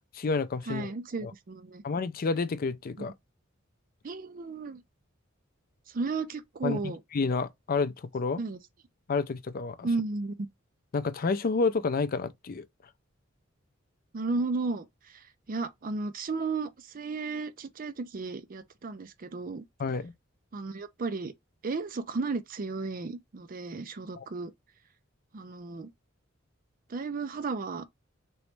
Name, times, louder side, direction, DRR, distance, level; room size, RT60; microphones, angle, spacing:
voice 1, 0.1-0.9 1.2-1.3 1.8-3.1 6.6-6.8 7.1-8.4 9.1-9.9 10.9-12.7 19.8-20.1 24.1-24.3, left 4 dB, 45° left, 0.4 m, -29 dB
voice 2, 0.7-1.8 4.0-4.8 5.9-7.0 8.4-8.6 9.8-10.5 14.1-19.6 20.5-21.3 21.6-24.5 25.3-25.9 26.9-27.9, right 3 dB, 45° right, 0.5 m, -34 dB
3.1 x 3.0 x 3.1 m
head